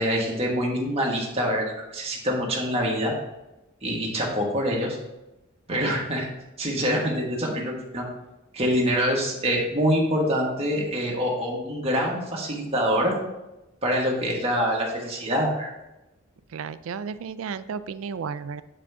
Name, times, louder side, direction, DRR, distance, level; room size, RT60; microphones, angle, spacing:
voice 1, 0.0-3.1 3.8-5.0 5.7-6.3 6.6-8.0 8.5-13.1 13.8-15.7, equal, 30° right, -2 dB, 1.5 m, -25 dB
voice 2, 16.5-18.6, right 6 dB, 80° right, 14 dB, 0.4 m, -33 dB
7.9 x 5.0 x 3.6 m, 0.97 s
head